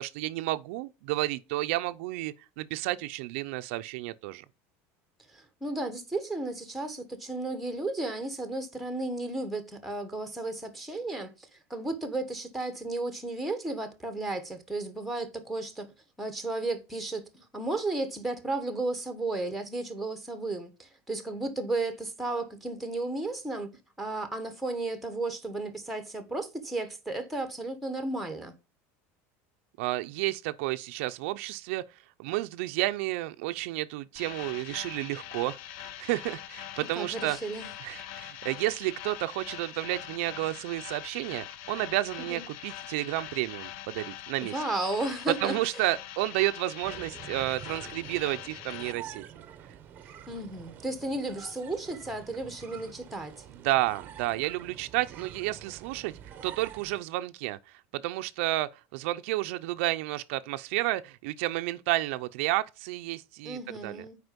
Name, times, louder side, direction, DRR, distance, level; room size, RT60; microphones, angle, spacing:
voice 1, 0.0-4.4 29.8-31.8 32.2-37.4 37.8-44.5 45.4-49.2 53.6-64.0, right 17 dB, 70° right, 0.5 m, -31 dB
voice 2, 5.3-15.9 16.2-23.7 24.0-28.5 36.9-37.7 42.2-42.4 44.4-45.5 50.3-53.4 63.4-64.2, right 2 dB, ahead, 1.1 m, -34 dB
sound 1, 34.2-48.9, left 12 dB, 55° left, 0.5 m, -43 dB
sound 2, 46.8-57.0, right 9 dB, 25° right, 0.8 m, -47 dB
7.9 x 4.9 x 5.2 m
cardioid pair, 175°, 7 cm